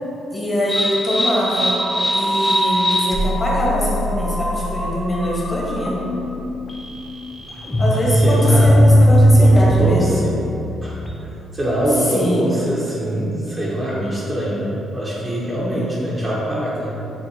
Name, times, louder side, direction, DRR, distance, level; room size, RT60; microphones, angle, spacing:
voice 1, 0.3-1.8 2.1-6.0 7.8-10.2 12.1-12.6, left 1 dB, 30° left, -5 dB, 1.2 m, -23 dB
sound 1, 0.7-11.3, equal, 10° left, 0.6 m, -19 dB
voice 2, 7.9-8.9 9.3-10.3 10.8-11.0 11.5-16.9, right 1 dB, 25° right, -8 dB, 0.8 m, -23 dB
7.3 x 2.5 x 2.7 m, 2.9 s
cardioid pair, 90°, 0 cm